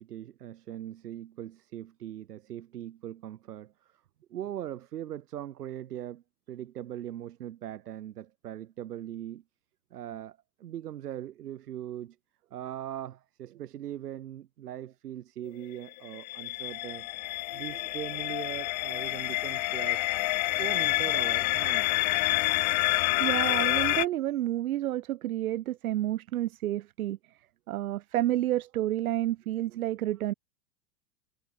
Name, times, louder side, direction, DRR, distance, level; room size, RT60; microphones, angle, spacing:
voice 1, 0.0-4.0 4.3-6.2 6.5-9.4 9.9-12.2 12.5-17.1 17.5-20.2 20.6-21.9, right 11 dB, 80° right, 7.3 m, -40 dB
sound 1, 15.9-24.1, left 21 dB, 30° left, 0.9 m, -28 dB
voice 2, 23.2-27.2 27.7-30.3, right 14 dB, 65° right, 1.7 m, -30 dB
supercardioid pair, 180°, 46 cm